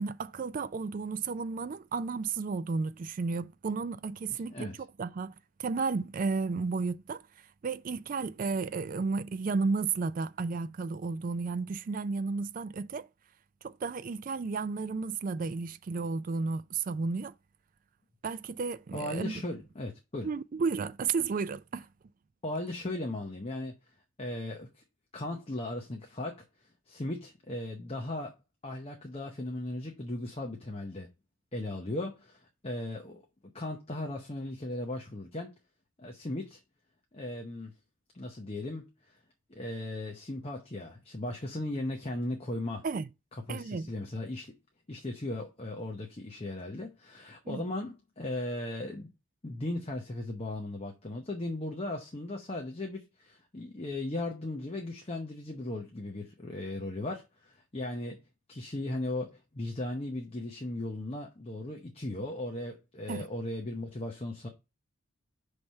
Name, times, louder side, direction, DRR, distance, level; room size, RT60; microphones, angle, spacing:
voice 1, 0.0-5.3 5.6-7.2 7.6-13.1 13.6-17.3 18.2-19.4 20.2-21.9 42.8-43.1 43.5-43.9 47.5-47.6 63.1-63.3, right 4 dB, 40° right, 0.3 m, -33 dB
voice 2, 4.3-4.8 18.9-20.3 22.4-23.8 24.2-24.8 25.1-28.3 28.6-31.1 31.5-33.2 33.5-35.5 36.0-36.6 37.1-37.7 38.1-39.2 39.5-42.8 43.3-44.5 44.9-49.1 49.4-58.2 58.5-64.5, left 1 dB, 25° left, 0.7 m, -37 dB
5.8 x 3.3 x 5.3 m
head